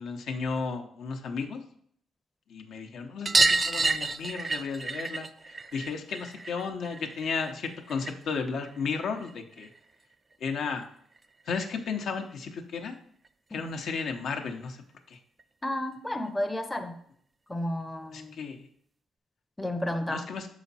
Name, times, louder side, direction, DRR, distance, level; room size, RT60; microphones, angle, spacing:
voice 1, 0.0-1.6 2.5-9.7 10.4-10.8 11.5-13.0 13.5-14.8 15.1-15.2 18.1-18.7 20.1-20.5, left 5 dB, 70° left, 4 dB, 0.8 m, -34 dB
sound 1, 3.3-8.4 8.7-9.8 11.2-11.3 11.5-11.6 11.9-12.0 13.3-13.4 13.6-13.7 14.1-14.2 15.4-15.5 16.3-16.4, right 3 dB, 25° right, 0.3 m, -29 dB
voice 2, 15.6-17.0 17.5-18.4 19.6-20.3, left 1 dB, 10° left, 6 dB, 0.6 m, -32 dB
6.0 x 4.9 x 4.1 m, 0.64 s
cardioid pair, 90°, 0 cm